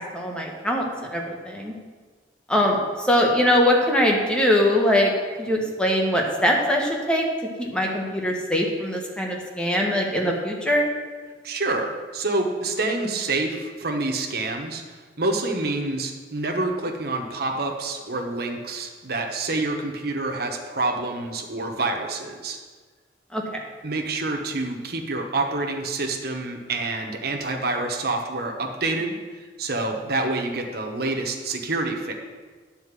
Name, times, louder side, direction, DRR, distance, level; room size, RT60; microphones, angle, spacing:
voice 1, 0.1-1.7 2.5-5.1 5.4-7.2 7.6-10.9 23.3-23.6, left 1 dB, 5° left, -1 dB, 1.3 m, -22 dB
voice 2, 11.4-14.8 15.2-22.6 23.8-32.1, right 2 dB, 60° right, 2 dB, 1.1 m, -27 dB
9.8 x 4.5 x 7.4 m, 1.5 s
head